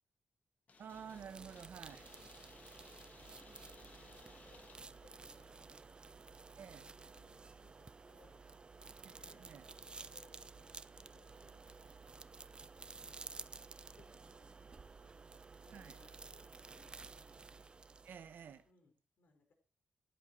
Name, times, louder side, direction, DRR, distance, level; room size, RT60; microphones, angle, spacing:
sound 1, 0.7-5.7, left 4 dB, 45° left, 1.8 m, -62 dB
sound 2, 0.8-18.6, right 4 dB, 25° right, 0.6 m, -54 dB
voice 1, 0.8-2.1 6.6-6.9 9.0-9.6 15.7-16.0 18.0-18.6, right 7 dB, 65° right, 1.2 m, -51 dB
voice 2, 1.3-1.7 2.1-2.8 3.3-5.8 6.2-8.4 9.1-13.5 13.9-17.4 18.6-19.5, left 4 dB, 60° left, 4.9 m, -70 dB
14.0 x 11.0 x 4.8 m
wide cardioid pair, 135°, 4 cm